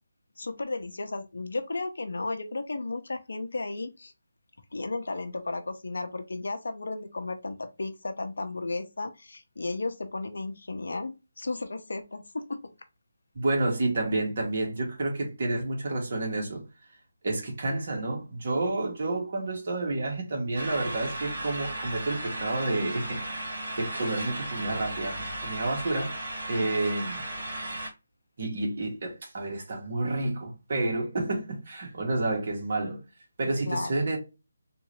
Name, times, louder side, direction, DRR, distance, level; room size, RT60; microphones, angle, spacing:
voice 1, 0.4-4.1 4.7-12.6 26.5-26.7 33.7-33.9, left 3 dB, 75° left, 0.7 m, -34 dB
voice 2, 13.4-16.6 17.2-23.2 23.8-26.1 26.5-27.2 28.4-33.0 33.4-34.2, right 2 dB, 50° right, 1.8 m, -29 dB
sound 1, 20.5-27.9, right 1 dB, 65° right, 1.8 m, -35 dB
3.7 x 2.6 x 3.1 m
figure-of-eight pair, 165°, 0 cm